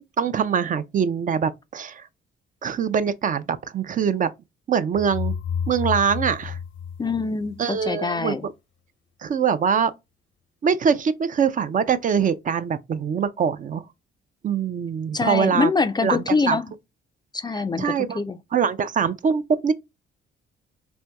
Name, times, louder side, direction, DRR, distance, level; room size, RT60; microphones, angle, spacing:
voice 1, 0.2-2.1 2.6-4.3 4.7-5.3 5.7-6.6 7.6-8.3 9.2-9.9 10.6-13.8 14.4-15.7 16.0-16.6 17.8-18.2 18.5-19.7, right 7 dB, 40° right, 0.4 m, -23 dB
sound 1, 4.9-7.8, left 7 dB, 80° left, 0.6 m, -30 dB
voice 2, 7.0-8.5 15.1-16.7 17.3-18.4, left 4 dB, 20° left, 0.3 m, -24 dB
4.3 x 2.6 x 2.2 m
cardioid pair, 90°, 20 cm